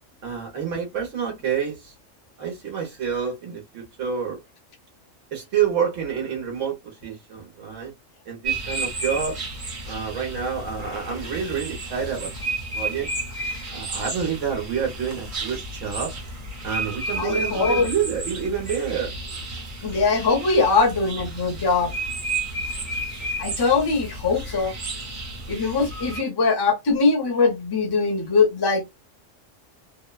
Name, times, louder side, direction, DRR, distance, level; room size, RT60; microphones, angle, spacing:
voice 1, 0.2-1.9 2.4-4.4 5.3-7.9 8.3-9.5 9.9-12.3 12.7-13.1 13.7-16.1 16.6-19.1, right 7 dB, 75° right, 1.2 m, -28 dB
sound 1, 8.4-26.2, right 2 dB, 45° right, 1.0 m, -32 dB
voice 2, 17.2-17.9 19.8-21.9 23.4-24.7 25.5-28.9, left 4 dB, 25° left, 0.6 m, -21 dB
2.9 x 2.1 x 2.2 m
omnidirectional pair, 1.3 m